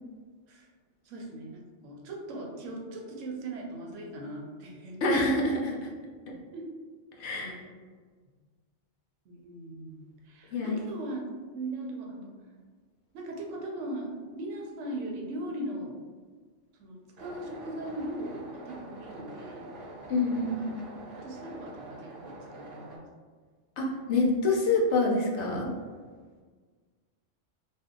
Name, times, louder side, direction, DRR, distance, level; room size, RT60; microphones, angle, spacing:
voice 1, 1.0-5.0 6.5-6.7 7.3-7.7 9.3-11.3 11.5-12.3 13.1-16.0 16.8-19.7 20.6-20.7 21.2-23.1, right 1 dB, 85° right, 0 dB, 1.0 m, -39 dB
voice 2, 5.0-5.8 7.2-7.6 10.5-10.8 20.1-20.8 23.8-25.7, left 2 dB, 70° left, -1 dB, 0.9 m, -26 dB
sound 1, 17.2-23.0, right 2 dB, 60° right, 0.9 m, -45 dB
2.7 x 2.3 x 3.6 m, 1.5 s
omnidirectional pair, 1.2 m